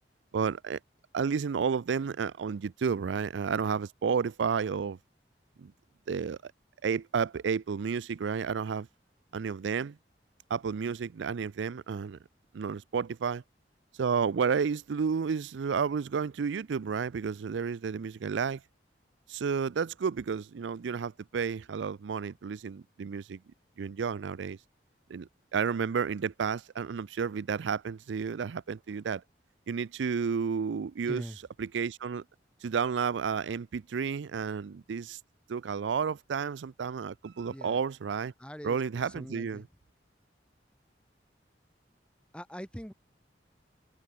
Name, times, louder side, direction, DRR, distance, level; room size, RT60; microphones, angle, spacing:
voice 1, 0.3-0.8 1.1-5.0 5.6-5.7 6.1-6.5 6.8-8.9 9.3-10.0 10.5-12.2 12.5-13.4 14.0-18.6 19.3-23.4 23.8-24.6 25.1-29.2 29.7-31.2 31.6-32.2 32.6-35.2 35.5-38.3 38.6-39.6, right 6 dB, 90° right, 0.4 m, -31 dB
voice 2, 31.1-31.4 37.5-37.8 38.4-39.6 42.3-42.9, equal, 5° left, 2.5 m, -43 dB
head